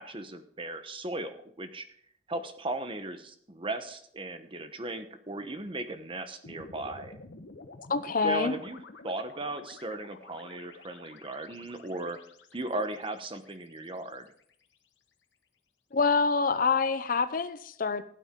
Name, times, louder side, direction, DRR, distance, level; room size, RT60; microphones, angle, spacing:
voice 1, 0.0-1.9 2.3-7.2 8.2-12.2 12.5-14.3, right 2 dB, 30° right, 9 dB, 1.0 m, -37 dB
sound 1, 6.4-14.7, left 3 dB, 85° left, 1.1 m, -50 dB
voice 2, 7.9-8.5 15.9-18.0, left 4 dB, 50° left, 13 dB, 0.6 m, -26 dB
15.5 x 9.0 x 3.8 m, 0.64 s
head